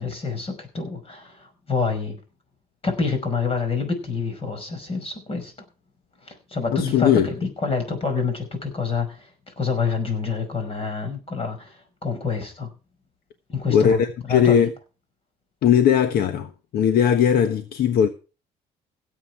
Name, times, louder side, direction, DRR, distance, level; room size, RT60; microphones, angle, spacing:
voice 1, 0.0-2.2 2.8-5.5 6.2-12.7 13.5-14.0 14.3-14.7, left 5 dB, 35° left, 5.5 m, -27 dB
voice 2, 6.7-7.3 13.7-14.7 15.6-18.1, left 8 dB, 65° left, 1.3 m, -19 dB
17.0 x 8.2 x 4.6 m
cardioid pair, 110°, 17 cm